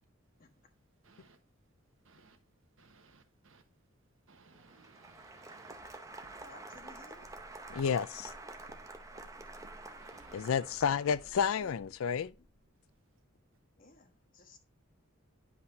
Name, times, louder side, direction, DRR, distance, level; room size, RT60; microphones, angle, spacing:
voice 1, 1.0-1.4 2.0-2.4 2.8-3.6 4.3-5.7 10.0-10.4, right 4 dB, 70° right, 1.1 m, -62 dB
Applause, 4.5-11.5, right 2 dB, 15° right, 0.6 m, -49 dB
Walk footsteps, 5.1-13.0, right 1 dB, 90° right, 1.1 m, -59 dB
voice 2, 6.4-7.3 11.2-12.0 12.4-12.5 13.8-14.6, left 3 dB, 40° left, 1.4 m, -57 dB
voice 3, 7.7-8.3 10.3-12.3, left 7 dB, 75° left, 0.4 m, -31 dB
9.6 x 5.7 x 2.6 m
head